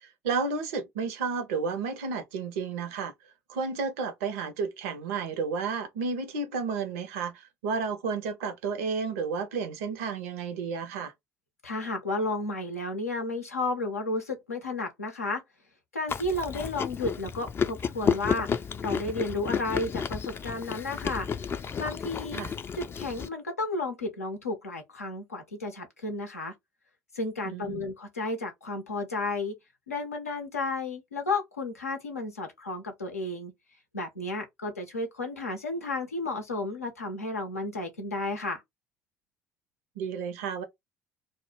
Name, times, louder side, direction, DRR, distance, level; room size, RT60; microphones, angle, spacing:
voice 1, 0.0-3.1 3.5-11.1 22.3-22.5 27.4-27.9 40.0-40.6, right 5 dB, 70° right, 0.5 m, -32 dB
voice 2, 11.6-15.4 15.9-18.5 18.8-21.3 21.8-22.4 22.7-26.5 27.1-29.5 29.9-33.5 33.9-38.6, left 2 dB, 90° left, 0.6 m, -32 dB
Chewing mastication, 16.1-23.3, left 6 dB, 30° left, 0.3 m, -32 dB
2.1 x 2.0 x 3.0 m
figure-of-eight pair, 55°, 8 cm